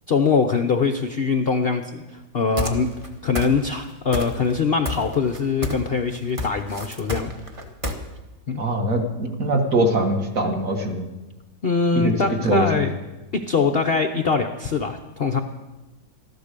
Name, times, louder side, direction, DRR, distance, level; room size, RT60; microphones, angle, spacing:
voice 1, 0.1-2.9 3.2-7.3 8.5-8.6 11.6-12.9 13.3-15.4, left 5 dB, 80° left, 6 dB, 0.5 m, -22 dB
sound 1, 2.6-3.1 3.3-3.8 4.1-4.6 4.8-5.9 6.1-7.9, left 1 dB, 20° right, 1.1 m, -28 dB
voice 2, 8.6-11.1 12.0-12.8, right 1 dB, 45° right, 3 dB, 1.9 m, -22 dB
13.5 x 12.0 x 6.7 m, 1.1 s
omnidirectional pair, 2.1 m